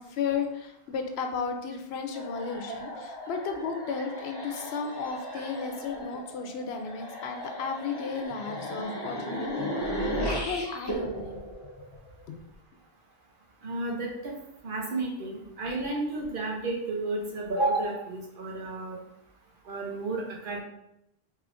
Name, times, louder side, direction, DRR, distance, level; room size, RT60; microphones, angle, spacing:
voice 1, 0.0-11.4 12.3-12.4, left 5 dB, 90° left, 5 dB, 0.8 m, -34 dB
sound 1, 2.1-12.4, equal, 30° left, 0.6 m, -36 dB
voice 2, 13.6-14.3 14.6-19.0 19.7-20.6, right 2 dB, 60° right, -1 dB, 0.8 m, -31 dB
4.8 x 2.8 x 2.5 m, 0.81 s
omnidirectional pair, 1.0 m